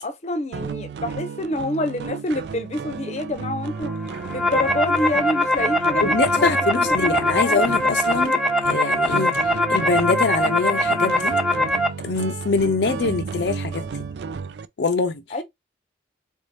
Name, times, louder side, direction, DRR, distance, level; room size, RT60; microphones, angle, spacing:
voice 1, 0.0-3.9 4.3-7.6 15.3-15.4, left 1 dB, 40° left, 0.6 m, -27 dB
sound 1, 0.5-14.6, right 5 dB, 75° right, 0.4 m, -33 dB
sound 2, 4.0-11.9, left 1 dB, ahead, 0.4 m, -22 dB
voice 2, 6.0-9.4 9.7-11.3 12.0-13.9 14.8-15.2, left 4 dB, 75° left, 0.5 m, -24 dB
3.8 x 2.6 x 3.3 m
head